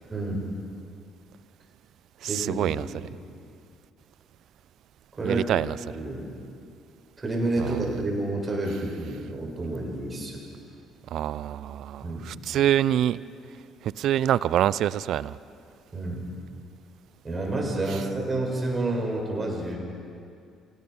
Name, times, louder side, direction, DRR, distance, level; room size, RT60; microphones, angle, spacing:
voice 1, 0.1-0.5 2.3-3.1 5.2-5.5 5.9-6.2 7.2-10.4 12.0-12.3 15.9-16.2 17.2-19.8, right 2 dB, 30° right, -2 dB, 8.0 m, -29 dB
voice 2, 2.2-2.9 5.2-5.8 7.6-7.8 11.1-13.2 13.8-15.4, right 11 dB, 60° right, 19 dB, 0.5 m, -25 dB
27.5 x 20.0 x 5.5 m, 2.4 s
hypercardioid pair, 50°, 0 cm